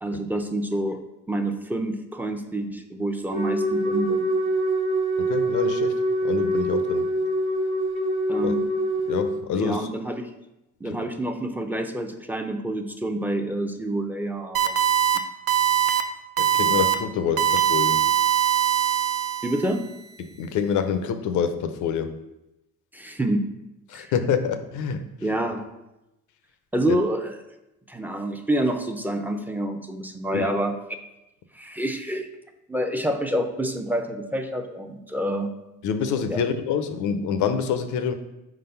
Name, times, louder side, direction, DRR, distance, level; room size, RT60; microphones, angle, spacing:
voice 1, 0.0-1.0 1.3-4.3 8.3-8.6 9.5-10.3 10.8-14.8 19.4-19.8 22.9-23.5 23.9-24.1 25.2-25.7 26.7-27.4 27.9-30.7 31.6-32.3 32.7-35.5 36.3-36.4, right 1 dB, 5° right, 5 dB, 0.6 m, -27 dB
Wind instrument woodwind instrument, 3.3-9.4, right 1 dB, 90° right, 1.4 m, -24 dB
voice 2, 5.2-7.1 8.4-8.5 9.1-9.9 16.4-18.0 20.4-22.1 23.9-25.1 26.9-27.0 30.3-30.5 35.8-38.1, left 7 dB, 80° left, 9 dB, 0.7 m, -26 dB
sound 1, 14.5-15.2 15.5-16.0 16.4-16.9 17.4-19.7, right 10 dB, 55° right, 0.6 m, -21 dB
4.7 x 4.0 x 5.6 m, 0.94 s
cardioid pair, 90°, 30 cm